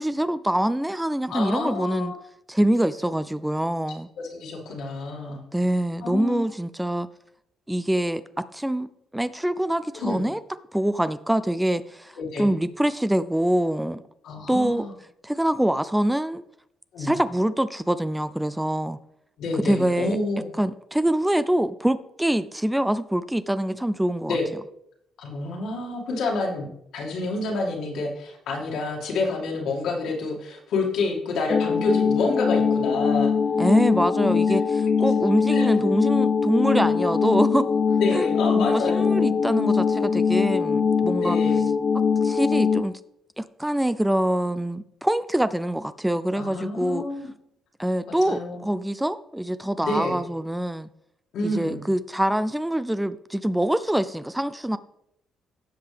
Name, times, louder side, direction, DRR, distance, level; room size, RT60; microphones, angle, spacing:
voice 1, 0.0-2.1 2.5-4.1 5.5-7.1 7.7-8.2 8.5-10.4 10.7-14.0 14.5-14.9 15.2-16.4 17.0-19.0 19.5-20.2 20.6-24.4 33.6-37.7 38.1-38.3 38.6-41.4 42.2-43.0 43.4-47.0 47.8-50.9 51.4-54.8, right 1 dB, 5° right, 13 dB, 0.4 m, -25 dB
voice 2, 1.3-2.2 4.2-5.4 6.0-6.4 9.9-10.2 12.2-12.5 14.2-14.9 16.9-17.1 19.4-20.5 24.3-24.4 25.2-26.7 26.9-33.3 35.5-35.7 38.0-39.4 41.2-41.7 46.3-47.3 48.1-48.7 49.8-50.2 51.3-51.8, left 3 dB, 80° left, -1 dB, 2.3 m, -28 dB
sound 1, 31.5-42.8, left 6 dB, 50° left, 0.5 m, -22 dB
16.0 x 5.4 x 3.4 m, 0.76 s
cardioid pair, 90°, 0 cm